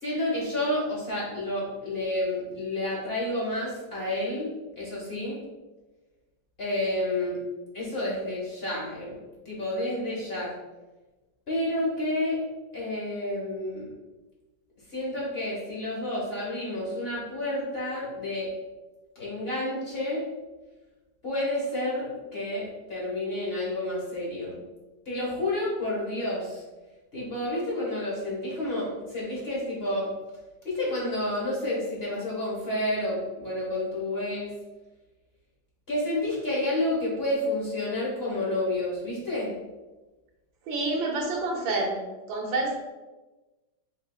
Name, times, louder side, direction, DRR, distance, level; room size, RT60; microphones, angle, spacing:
voice 1, 0.0-5.4 6.6-7.4 7.7-9.2 9.4-10.5 11.5-12.4 12.7-13.9 14.9-18.5 19.1-20.2 21.2-24.5 25.0-26.6 27.1-30.1 30.6-34.5 35.9-39.5, left 1 dB, 35° left, -6 dB, 1.3 m, -30 dB
voice 2, 40.7-42.0 42.3-42.7, right 2 dB, 90° right, 0 dB, 1.7 m, -28 dB
5.3 x 3.9 x 2.2 m, 1.2 s
omnidirectional pair, 2.1 m